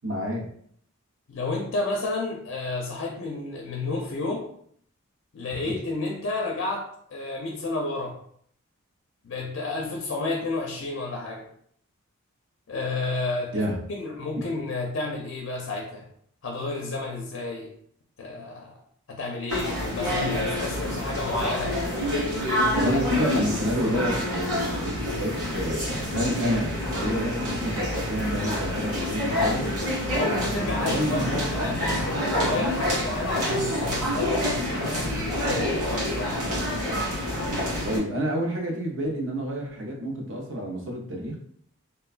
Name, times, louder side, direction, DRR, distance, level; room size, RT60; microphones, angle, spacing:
voice 1, 0.0-0.4 13.5-13.8 14.4-14.5 22.7-29.7 30.8-31.8 32.3-32.7 33.1-33.3 37.8-41.4, equal, 55° right, 0 dB, 0.6 m, -29 dB
voice 2, 1.3-4.5 5.3-8.2 9.2-11.5 12.7-13.6 13.9-16.1 16.4-17.7 18.2-18.8 19.1-21.8 30.1-36.3, left 2 dB, 60° left, 0 dB, 0.4 m, -31 dB
sound 1, 19.5-38.0, left 1 dB, 90° right, 1.3 m, -27 dB
3.3 x 2.2 x 2.4 m, 0.64 s
head